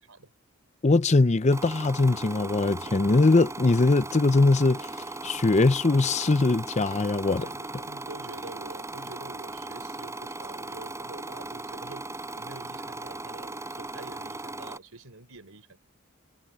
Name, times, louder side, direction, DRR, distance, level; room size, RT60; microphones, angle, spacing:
voice 1, 0.8-4.9 5.2-7.5, left 3 dB, 30° left, 0.6 m, -21 dB
sound 1, 1.5-14.8, right 2 dB, 15° right, 7.0 m, -38 dB
voice 2, 7.3-12.1 12.4-15.8, right 3 dB, 85° right, 4.1 m, -46 dB
head